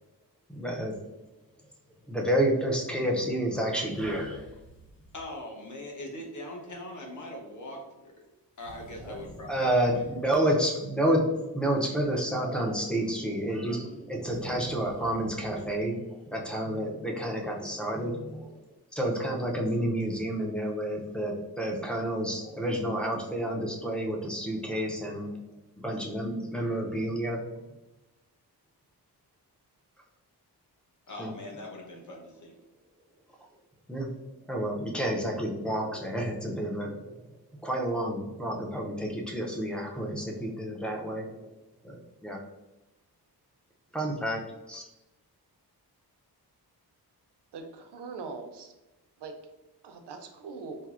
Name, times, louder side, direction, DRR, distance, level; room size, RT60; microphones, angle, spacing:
voice 1, 0.5-1.1 2.1-4.5 9.1-9.2 9.5-18.6 18.9-25.4 25.8-27.4 31.2-31.3 33.9-34.1 34.5-37.2 37.6-41.5 41.8-42.4 43.9-44.8, right 1 dB, 5° left, 0 dB, 0.4 m, -30 dB
sound 1, 3.9-5.4 8.6-10.4 14.2-15.8, right 1 dB, 85° left, 1.4 m, -50 dB
voice 2, 5.1-8.2 8.6-9.9 31.1-32.5, left 1 dB, 50° left, 1 dB, 0.7 m, -41 dB
voice 3, 47.5-48.7 49.2-49.3 49.8-50.8, right 4 dB, 85° right, 5 dB, 0.5 m, -41 dB
4.3 x 2.0 x 2.4 m, 1.0 s
wide cardioid pair, 140°, 40 cm